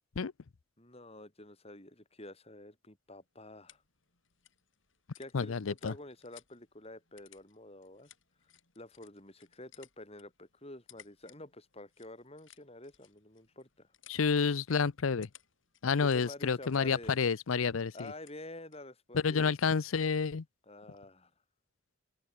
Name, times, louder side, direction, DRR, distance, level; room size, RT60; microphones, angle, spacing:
voice 1, 0.8-3.8 5.2-8.1 8.8-13.9 16.0-17.2 17.9-19.5 20.7-21.3, left 1 dB, 30° left, 6.1 m, -49 dB
sound 1, 3.1-18.9, left 11 dB, 70° left, 7.0 m, -63 dB
voice 2, 5.3-5.9 14.1-15.3 15.8-18.1 19.1-20.4, left 5 dB, 85° left, 0.6 m, -29 dB
head